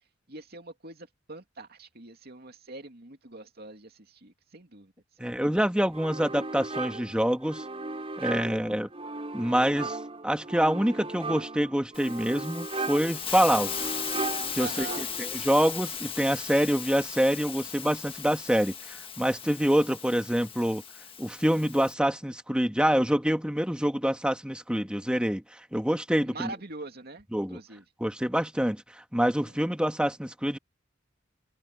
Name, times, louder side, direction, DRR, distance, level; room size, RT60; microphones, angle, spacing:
voice 1, 0.3-4.9 5.2-5.5 14.6-15.1 26.2-27.3 27.5-27.8 29.4-29.5, right 3 dB, 55° right, 2.6 m, -43 dB
voice 2, 5.2-7.6 8.2-8.9 9.3-10.0 10.2-13.7 14.5-20.8 21.2-26.5 27.3-27.6 28.0-30.6, equal, 5° right, 1.7 m, -26 dB
sound 1, 5.9-15.4, right 3 dB, 30° right, 4.5 m, -37 dB
Hiss, 11.9-21.9, left 7 dB, 30° left, 1.6 m, -37 dB
head